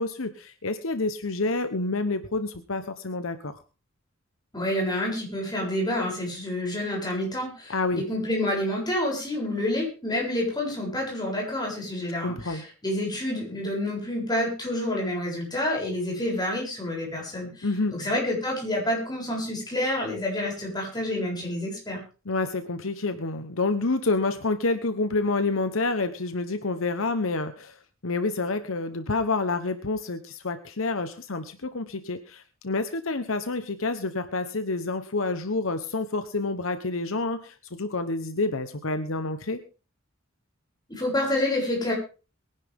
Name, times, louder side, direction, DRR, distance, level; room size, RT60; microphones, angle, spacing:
voice 1, 0.0-3.5 7.7-8.0 12.2-12.6 17.6-18.0 22.3-27.8 28.0-39.6, left 3 dB, 70° left, 10 dB, 1.1 m, -28 dB
voice 2, 4.5-22.0 40.9-41.9, left 1 dB, 20° left, -1 dB, 7.7 m, -28 dB
22.5 x 11.0 x 3.7 m, 0.34 s
head